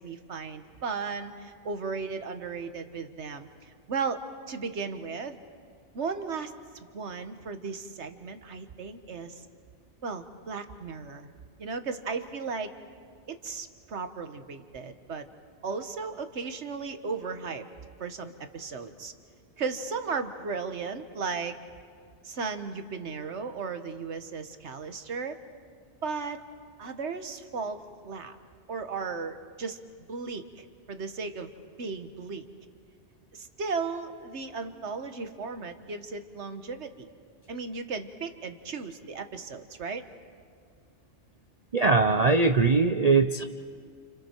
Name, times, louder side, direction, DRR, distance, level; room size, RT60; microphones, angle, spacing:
voice 1, 0.0-3.5 3.9-5.4 5.9-9.4 10.0-11.3 11.6-12.7 13.3-15.3 15.6-17.6 18.0-19.1 19.6-21.6 22.2-25.4 26.0-26.4 26.8-28.4 28.7-29.8 30.1-31.5 31.8-32.5 33.3-37.1 37.5-40.1, right 4 dB, 70° right, 8 dB, 1.5 m, -35 dB
voice 2, 41.7-43.4, right 4 dB, 40° right, 7 dB, 0.6 m, -21 dB
30.0 x 29.0 x 4.6 m, 2.1 s
omnidirectional pair, 1.2 m